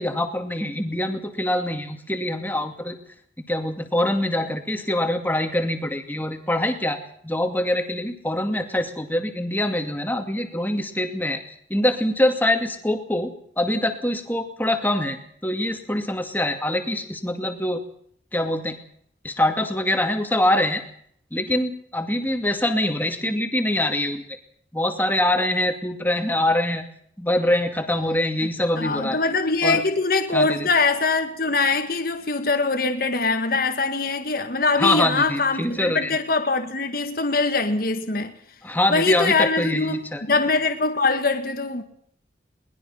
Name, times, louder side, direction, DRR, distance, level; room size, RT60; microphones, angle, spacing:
voice 1, 0.0-3.0 3.4-11.4 11.7-15.2 15.4-17.8 18.3-18.8 19.2-20.8 21.3-24.2 24.7-26.8 27.2-29.2 29.6-29.8 30.3-30.7 34.8-36.2 38.6-40.2, left 1 dB, 10° left, 2.4 m, -24 dB
voice 2, 28.8-38.4 38.9-41.8, left 3 dB, 50° left, 1.8 m, -23 dB
22.5 x 20.0 x 5.8 m
head